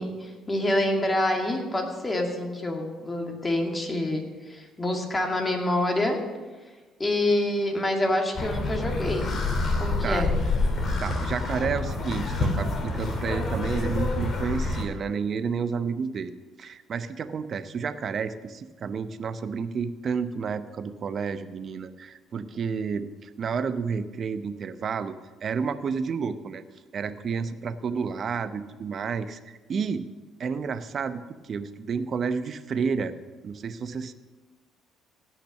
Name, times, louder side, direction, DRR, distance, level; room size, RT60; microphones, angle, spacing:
voice 1, 0.0-6.2 7.0-9.3 9.8-10.4, left 1 dB, 25° left, 2 dB, 2.3 m, -27 dB
sound 1, 8.3-14.8, left 2 dB, 45° left, 2.6 m, -27 dB
voice 2, 11.0-16.3 16.6-25.1 25.4-26.6 26.9-30.1 30.4-31.2 31.5-33.1 33.4-34.1, right 5 dB, 50° right, 12 dB, 0.7 m, -30 dB
16.5 x 5.9 x 6.5 m, 1.3 s
supercardioid pair, 80°, 0 cm